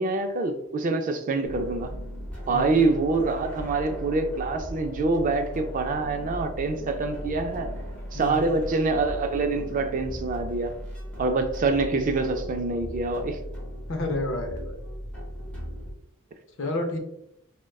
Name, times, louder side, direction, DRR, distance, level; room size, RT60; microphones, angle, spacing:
voice 1, 0.0-1.9 2.5-7.7 8.1-10.7 11.2-13.4, right 3 dB, 35° right, 0.3 m, -25 dB
sound 1, 1.4-15.9, equal, 5° left, 0.8 m, -37 dB
voice 2, 2.5-2.8 8.1-8.5 13.9-14.8 16.6-17.0, left 2 dB, 60° left, 0.6 m, -30 dB
4.5 x 2.1 x 2.3 m
head